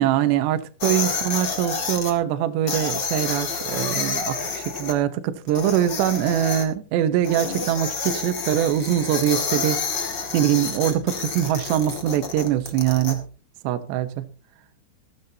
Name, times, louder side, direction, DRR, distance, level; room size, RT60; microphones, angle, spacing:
voice 1, 0.0-9.8 10.3-13.2 13.6-14.3, right 11 dB, 75° right, 2.8 m, -23 dB
sound 1, 0.8-2.1 2.7-4.9 5.5-6.6 7.2-13.1, left 4 dB, 50° left, 1.2 m, -29 dB
15.5 x 14.5 x 2.8 m
omnidirectional pair, 5.5 m